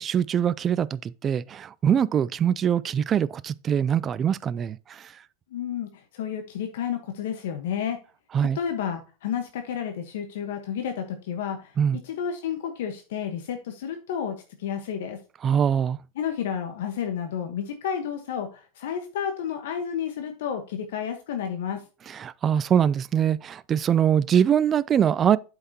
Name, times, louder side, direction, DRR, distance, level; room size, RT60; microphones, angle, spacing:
voice 1, 0.0-5.1 8.3-8.6 11.8-12.0 15.4-16.0 22.1-25.4, right 8 dB, 25° right, 0.3 m, -23 dB
voice 2, 5.5-8.0 8.4-11.7 12.0-15.2 16.2-21.8, left 8 dB, 75° left, 1.1 m, -31 dB
7.9 x 5.7 x 2.8 m
supercardioid pair, 135°, 0 cm